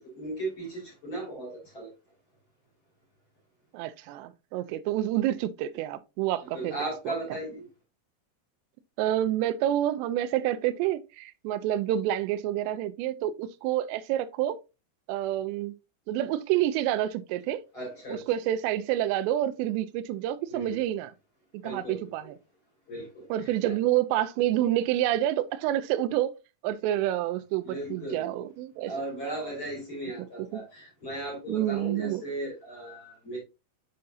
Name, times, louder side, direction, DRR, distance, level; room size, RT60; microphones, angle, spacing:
voice 1, 0.1-1.9 6.5-7.7 17.7-18.2 20.5-20.8 21.6-22.1 22.9-23.6 27.6-28.3 28.9-33.4, right 2 dB, 35° left, 2.5 m, -36 dB
voice 2, 3.7-6.8 7.1-7.2 9.0-14.6 15.1-15.7 16.1-17.6 18.1-21.1 21.6-22.4 23.3-26.3 26.6-28.9 30.5-30.6 31.5-32.2, right 12 dB, 85° right, 2.5 m, -28 dB
6.5 x 5.6 x 2.6 m
omnidirectional pair, 5.2 m